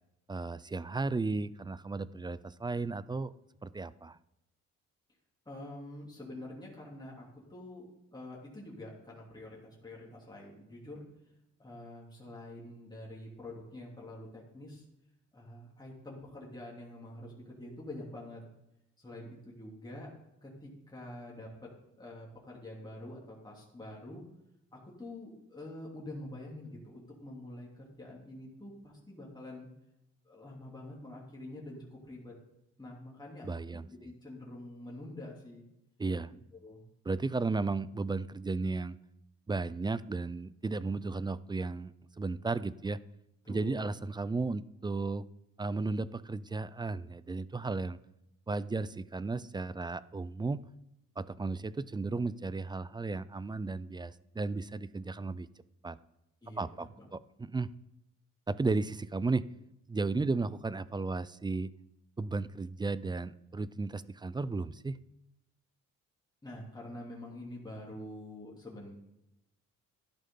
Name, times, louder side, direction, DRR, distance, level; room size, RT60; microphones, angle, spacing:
voice 1, 0.3-3.3 3.6-4.2 33.4-33.9 36.0-36.3 37.1-39.0 39.5-43.0 43.5-45.2 45.6-48.0 48.5-50.6 51.2-55.5 55.8-56.0 56.6-57.7 58.5-59.5 59.9-61.7 62.2-65.0, right 3 dB, 15° right, 17 dB, 0.4 m, -34 dB
voice 2, 5.4-11.0 11.6-14.9 15.3-18.4 19.0-20.1 20.4-21.7 22.0-24.2 24.7-29.7 30.2-32.3 32.8-35.6 36.6-36.8 43.4-43.9 56.4-57.1 66.4-69.0, left 1 dB, 15° left, -4 dB, 3.1 m, -46 dB
13.0 x 11.0 x 3.9 m, 0.87 s
cardioid pair, 90°, 30 cm